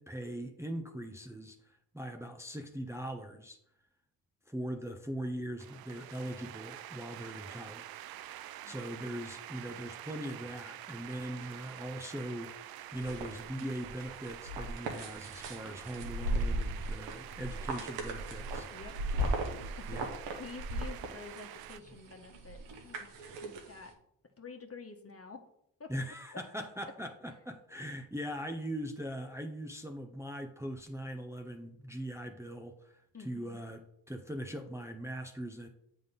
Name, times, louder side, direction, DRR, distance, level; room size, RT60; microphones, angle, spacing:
voice 1, 0.0-3.6 4.5-8.0 8.3-18.7 19.9-20.1 25.9-35.7, equal, 5° right, 4 dB, 0.9 m, -41 dB
sound 1, 5.6-21.8, right 13 dB, 60° right, 0.5 m, -47 dB
sound 2, 12.9-23.9, right 1 dB, 85° right, 1.2 m, -37 dB
voice 2, 18.7-19.4 19.8-20.0 20.4-23.1 23.4-23.9 24.4-25.4 25.8-25.9 26.3-26.4 33.1-33.6, left 4 dB, 35° left, 5 dB, 1.4 m, -49 dB
7.8 x 3.8 x 5.4 m, 0.73 s
hypercardioid pair, 40°, 42 cm